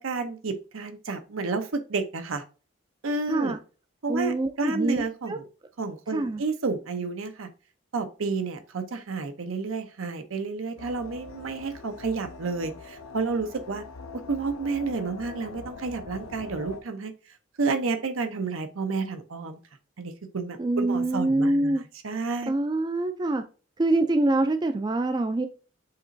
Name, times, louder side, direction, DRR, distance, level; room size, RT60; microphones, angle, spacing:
voice 1, 0.0-2.4 3.0-3.6 4.0-5.5 5.8-7.5 7.9-13.8 14.1-17.1 17.6-19.6 20.0-22.5, right 4 dB, 85° right, 0.7 m, -30 dB
voice 2, 3.3-3.6 4.1-5.4 6.1-6.4 20.6-21.8 22.5-23.4 23.8-25.5, right 2 dB, 20° right, 0.3 m, -25 dB
sound 1, 10.8-16.8, left 4 dB, 85° left, 0.6 m, -43 dB
6.6 x 2.9 x 2.6 m
head